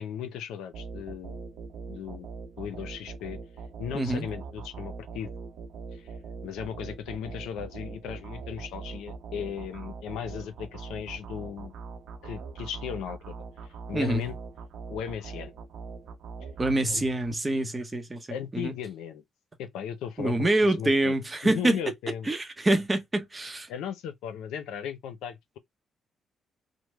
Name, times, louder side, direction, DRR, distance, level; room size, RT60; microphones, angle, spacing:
voice 1, 0.0-1.5 1.9-2.3 2.6-3.4 3.8-5.3 5.9-6.1 6.4-11.7 12.2-13.3 13.6-14.4 14.9-15.5 16.4-16.5 16.9-17.0 18.3-19.2 19.6-21.2 21.4-22.3 23.7-25.6, left 8 dB, 90° left, 0.5 m, -37 dB
sound 1, 0.7-17.3, right 4 dB, 75° right, 0.8 m, -42 dB
voice 2, 3.9-4.2 13.9-14.2 16.6-18.3 18.5-18.7 20.2-21.8 22.3-23.7, right 2 dB, 20° right, 0.8 m, -26 dB
3.1 x 2.1 x 3.2 m
cardioid pair, 90°, 0 cm